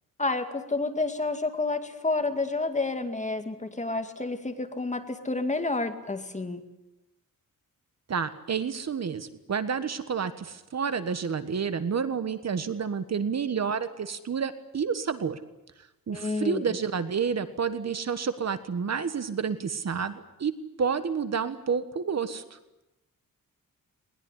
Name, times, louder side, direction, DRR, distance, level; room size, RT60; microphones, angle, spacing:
voice 1, 0.2-6.6 16.1-16.8, left 3 dB, 20° left, 7 dB, 2.3 m, -29 dB
voice 2, 8.1-15.4 16.1-20.5 20.8-22.6, right 6 dB, 50° right, 11 dB, 1.5 m, -29 dB
21.0 x 20.5 x 10.0 m, 0.94 s
wide cardioid pair, 125°, 34 cm